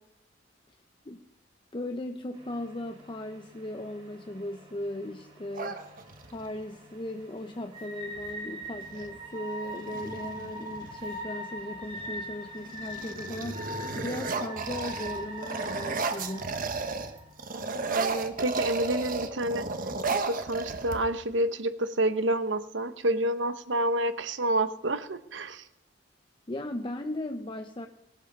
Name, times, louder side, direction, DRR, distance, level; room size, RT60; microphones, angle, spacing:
voice 1, 1.7-5.8 6.3-16.5 26.5-27.9, left 1 dB, 25° left, 6 dB, 0.7 m, -37 dB
sound 1, 2.3-18.3, equal, 30° right, 3.3 m, -43 dB
sound 2, 5.5-6.5 8.2-8.3 8.6-9.1 9.7-11.2 11.8-12.2 12.6-17.1 17.4-21.3, right 4 dB, 45° right, 1.2 m, -34 dB
voice 2, 17.9-19.6 20.1-25.6, right 1 dB, 70° right, 11 dB, 1.0 m, -28 dB
18.5 x 11.5 x 5.4 m, 0.85 s
head